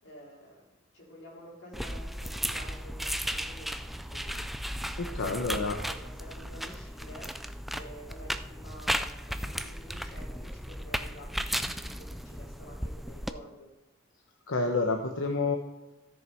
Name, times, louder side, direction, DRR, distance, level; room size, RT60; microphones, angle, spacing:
voice 1, 0.0-0.6 0.9-4.5 4.9-7.3 7.7-13.7, equal, 70° left, -4 dB, 4.4 m, -50 dB
sound 1, 1.7-13.3, equal, ahead, 0.3 m, -35 dB
voice 2, 5.0-5.8 14.5-15.6, left 3 dB, 90° left, 4 dB, 1.0 m, -29 dB
13.5 x 6.7 x 4.5 m, 0.99 s
head